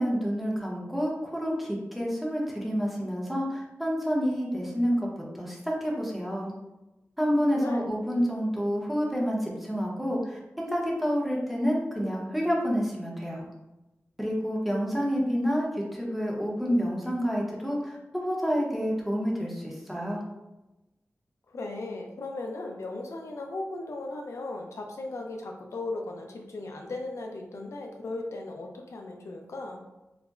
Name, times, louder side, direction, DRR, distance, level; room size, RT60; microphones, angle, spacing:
voice 1, 0.0-5.0 5.4-6.5 7.2-13.4 14.2-20.2, equal, ahead, -3 dB, 0.7 m, -28 dB
voice 2, 7.5-7.9 21.5-29.8, left 2 dB, 75° left, 2 dB, 0.4 m, -37 dB
3.9 x 2.0 x 2.3 m, 1.0 s
wide cardioid pair, 95°, 5 cm